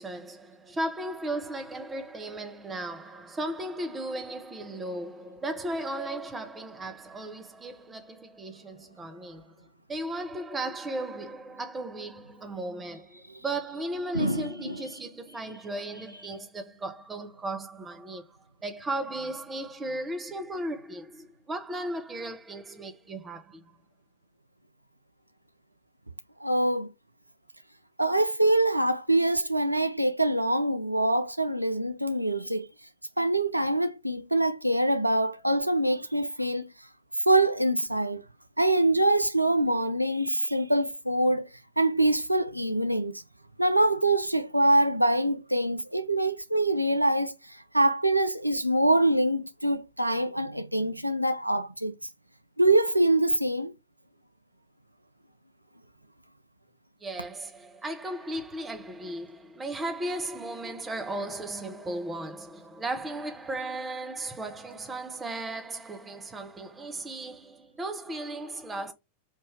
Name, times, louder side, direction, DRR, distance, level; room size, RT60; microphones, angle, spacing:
voice 1, 0.0-18.4 18.6-23.7 57.0-68.9, right 1 dB, 15° right, 0.8 m, -36 dB
voice 2, 14.1-14.8 26.4-26.9 28.0-32.7 33.2-36.7 37.3-38.2 38.6-41.5 41.8-43.2 43.6-51.9 52.6-53.7, right 1 dB, 85° right, 0.4 m, -24 dB
3.6 x 2.7 x 2.9 m
figure-of-eight pair, 90°, 0 cm